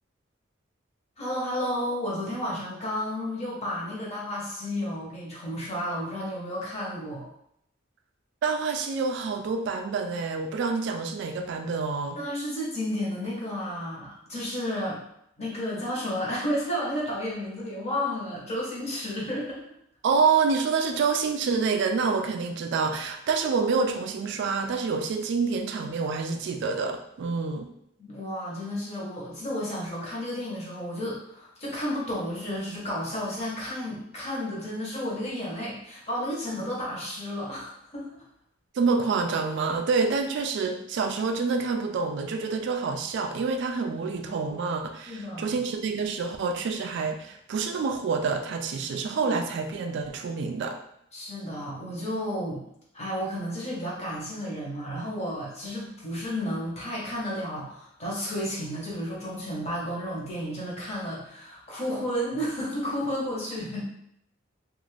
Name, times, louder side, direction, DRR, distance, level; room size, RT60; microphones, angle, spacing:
voice 1, 1.2-7.3 12.2-15.0 15.4-19.6 28.0-38.2 45.0-45.6 49.2-49.4 51.1-52.6 52.9-63.8, equal, 35° left, -5 dB, 0.9 m, -32 dB
voice 2, 8.4-12.2 20.0-27.7 38.8-50.8, right 4 dB, 60° right, 5 dB, 0.3 m, -27 dB
2.5 x 2.4 x 3.2 m, 0.74 s
head